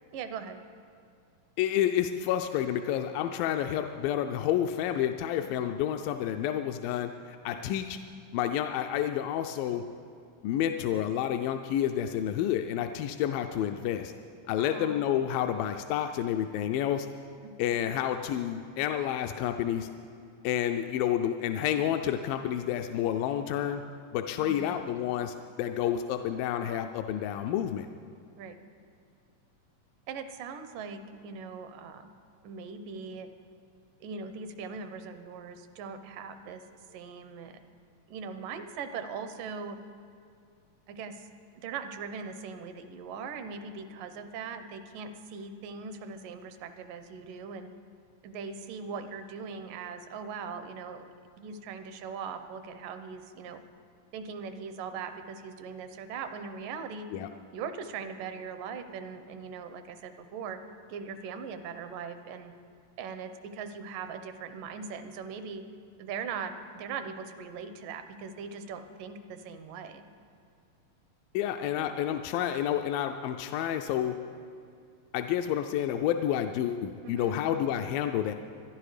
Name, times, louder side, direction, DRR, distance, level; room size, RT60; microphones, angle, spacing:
voice 1, 0.1-0.6 14.6-15.1 17.4-17.6 24.4-24.7 28.4-28.6 30.1-32.1 32.4-33.3 34.0-37.6 38.1-39.8 40.9-41.3 41.6-47.7 48.2-51.1 51.4-53.6 54.1-57.1 57.5-60.6 60.9-62.5 63.0-65.6 66.0-70.1 77.0-77.4, right 5 dB, 75° right, 9 dB, 2.4 m, -40 dB
voice 2, 1.6-8.0 8.3-9.8 10.4-14.1 14.5-17.1 17.6-19.9 20.4-23.8 24.1-27.9 57.1-57.3 71.3-74.2 75.1-78.3, left 10 dB, 85° left, 6 dB, 2.3 m, -29 dB
25.0 x 11.0 x 4.9 m, 2.3 s
omnidirectional pair, 4.0 m